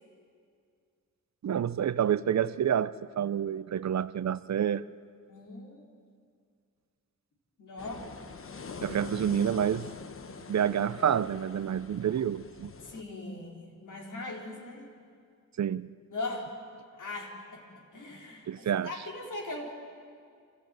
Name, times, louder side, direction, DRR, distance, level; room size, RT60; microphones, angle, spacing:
voice 1, 1.4-4.8 8.8-9.9 10.5-12.7 15.6-15.9 18.5-18.9, right 9 dB, 60° right, 0.6 m, -28 dB
voice 2, 5.3-5.8 7.6-8.1 12.8-14.9 16.1-16.6 16.9-19.7, left 2 dB, 70° left, 4.0 m, -40 dB
sound 1, 7.8-13.0, left 5 dB, 45° left, 1.0 m, -44 dB
26.0 x 14.5 x 9.1 m
wide cardioid pair, 105°, 32 cm